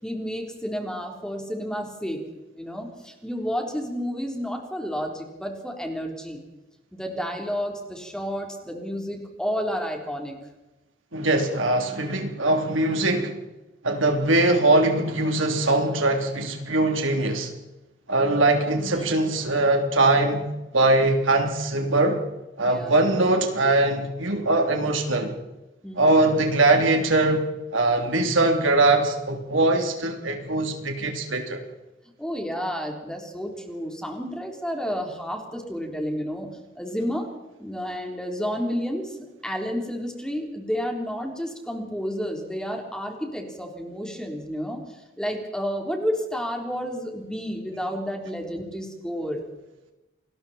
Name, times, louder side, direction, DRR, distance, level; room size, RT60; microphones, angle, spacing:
voice 1, 0.0-2.3 2.5-6.4 6.9-10.4 18.8-19.2 22.6-22.9 25.8-26.3 32.2-37.3 37.6-39.1 39.4-44.8 45.2-49.5, equal, 5° left, 2 dB, 3.8 m, -31 dB
voice 2, 11.1-13.3 13.8-17.5 18.1-20.5 20.7-22.2 22.6-25.4 26.0-31.6, right 2 dB, 85° right, 4 dB, 3.2 m, -21 dB
28.5 x 21.0 x 4.4 m, 1.0 s
head